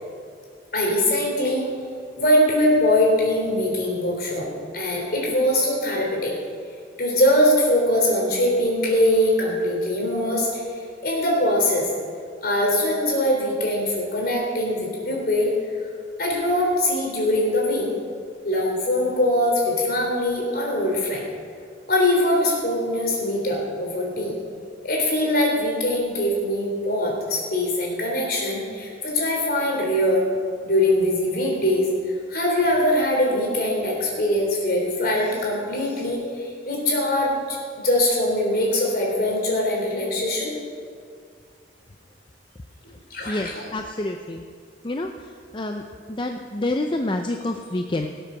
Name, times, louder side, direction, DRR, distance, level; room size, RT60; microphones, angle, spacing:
voice 1, 0.7-1.6 2.2-4.5 4.7-6.3 7.0-10.7 11.0-11.9 12.4-15.5 16.2-17.9 18.4-21.2 21.9-24.4 24.8-30.2 30.6-31.9 32.3-37.6 37.8-40.5 43.1-43.7, left 1 dB, 55° left, -2 dB, 3.8 m, -22 dB
voice 2, 43.3-44.4 44.8-48.1, left 2 dB, 25° left, 4 dB, 0.6 m, -28 dB
18.0 x 7.8 x 6.4 m, 2.2 s
head